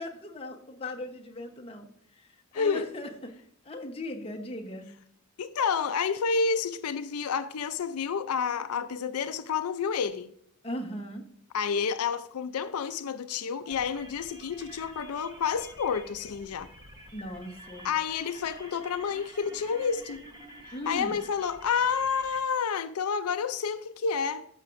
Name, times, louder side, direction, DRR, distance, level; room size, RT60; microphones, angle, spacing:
voice 1, 0.0-1.9 2.2-2.3 2.5-3.3 3.6-4.9 10.6-11.2 17.1-17.9 20.7-21.2, left 1 dB, 25° left, 1.1 m, -38 dB
voice 2, 2.5-2.9 5.4-10.3 11.5-16.7 17.8-20.2 20.7-24.5, left 6 dB, 85° left, 0.5 m, -29 dB
sound 1, 13.7-22.4, equal, 20° right, 1.2 m, -49 dB
14.0 x 5.8 x 2.6 m
head